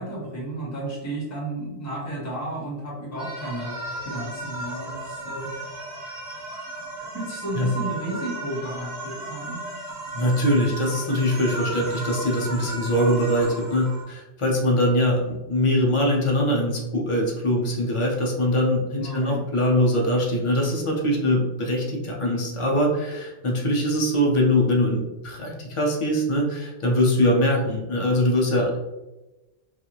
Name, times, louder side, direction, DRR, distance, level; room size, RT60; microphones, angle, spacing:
voice 1, 0.0-3.7 4.0-5.5 7.1-9.6 19.0-19.4, right 1 dB, 15° left, -4 dB, 0.7 m, -32 dB
sound 1, 3.2-14.0, right 2 dB, 60° right, 1.2 m, -35 dB
voice 2, 10.1-28.8, equal, 45° left, -2 dB, 0.4 m, -22 dB
2.5 x 2.4 x 2.9 m, 1.1 s
omnidirectional pair, 1.2 m